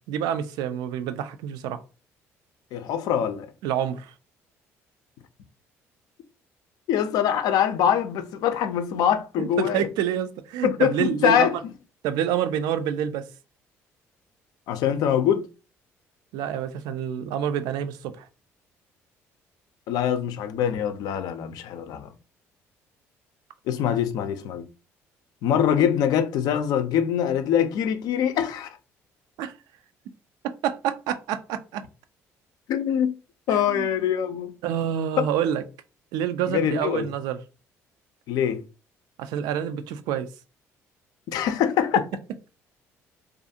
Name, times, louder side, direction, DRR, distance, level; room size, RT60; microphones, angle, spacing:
voice 1, 0.1-1.8 3.6-4.1 9.4-11.5 12.0-13.2 16.3-18.2 29.4-29.5 30.6-31.8 33.5-34.0 34.6-35.6 36.1-37.4 39.2-40.3, right 9 dB, 75° right, 0.3 m, -27 dB
voice 2, 2.7-3.5 6.9-9.9 10.6-11.6 14.7-15.5 19.9-22.1 23.7-24.7 25.4-28.7 32.7-33.2 33.5-34.5 35.2-35.3 36.5-37.1 38.3-38.6 41.3-42.0, left 9 dB, 70° left, 0.4 m, -23 dB
2.5 x 2.3 x 2.7 m
hypercardioid pair, 60°, 7 cm